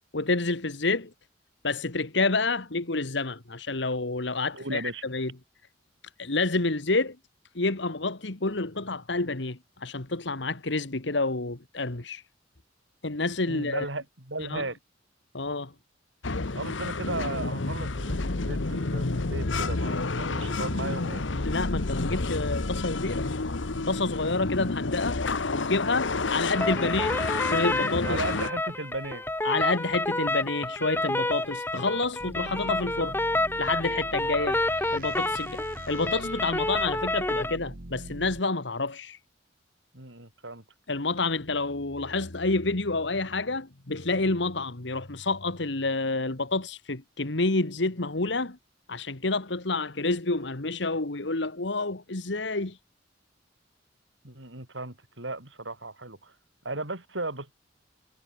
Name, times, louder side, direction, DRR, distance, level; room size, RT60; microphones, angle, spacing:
voice 1, 0.1-1.1 1.6-5.3 6.2-7.2 7.6-12.2 13.0-13.9 14.5-14.6 15.3-15.7 21.5-23.3 23.9-25.2 25.5-28.2 29.4-33.2 33.6-34.5 34.9-39.2 40.9-48.6 48.9-52.8, left 3 dB, 70° left, 1.8 m, -29 dB
voice 2, 4.5-5.0 13.5-14.8 16.5-21.2 24.6-24.8 28.0-29.2 32.5-32.7 34.2-34.6 39.9-40.6 54.2-56.3 56.6-57.5, right 2 dB, 80° right, 7.2 m, -36 dB
sound 1, 16.2-28.5, left 3 dB, 90° left, 1.3 m, -30 dB
sound 2, 26.6-37.6, left 2 dB, 10° left, 2.1 m, -29 dB
sound 3, 32.2-38.4, right 1 dB, 50° right, 1.7 m, -43 dB
head